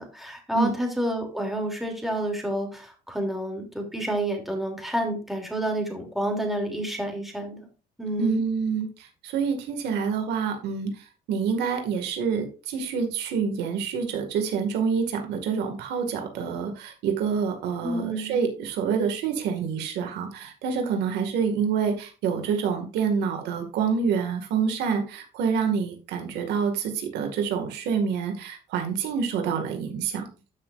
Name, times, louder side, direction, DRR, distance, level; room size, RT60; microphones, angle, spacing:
voice 1, 0.0-7.6 8.0-8.4 17.8-18.4, right 1 dB, ahead, 2 dB, 2.9 m, -29 dB
voice 2, 8.2-30.3, right 6 dB, 80° right, 5 dB, 2.1 m, -27 dB
13.0 x 6.1 x 2.5 m, 0.35 s
cardioid pair, 110°, 17 cm